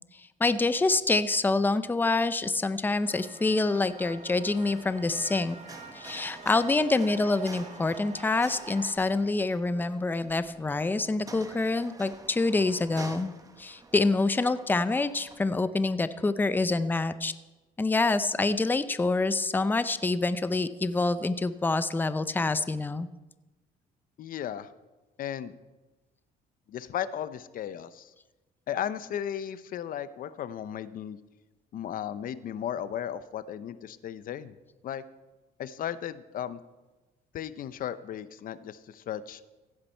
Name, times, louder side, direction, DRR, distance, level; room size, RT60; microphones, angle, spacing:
voice 1, 0.4-5.6 5.9-13.3 13.6-17.3 17.8-23.1, left 3 dB, 10° left, 13 dB, 0.5 m, -26 dB
sound 1, 3.0-8.9, right 4 dB, 40° right, 2.6 m, -46 dB
sound 2, 3.9-15.4, right 3 dB, 20° right, 1.1 m, -49 dB
voice 2, 24.2-24.7 25.2-25.6 26.7-28.1 28.7-31.2 31.7-34.5 34.8-35.0 35.6-36.6 37.3-39.4, left 10 dB, 55° left, 14 dB, 0.7 m, -35 dB
16.0 x 9.7 x 4.5 m, 1.1 s
cardioid pair, 110°, 17 cm